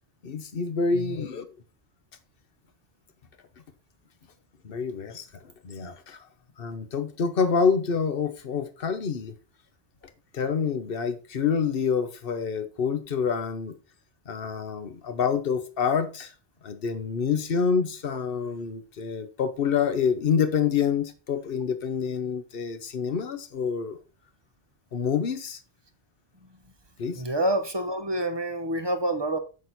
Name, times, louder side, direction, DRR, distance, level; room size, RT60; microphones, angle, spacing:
voice 1, 0.2-1.5 4.6-5.3 5.6-6.2 6.6-9.3 10.3-13.7 14.3-16.3 16.6-24.0 24.9-25.6 27.0-27.2, left 6 dB, 60° left, 1.2 m, -27 dB
voice 2, 27.1-29.4, right 1 dB, 25° right, 0.9 m, -28 dB
7.4 x 6.2 x 4.2 m
omnidirectional pair, 1.1 m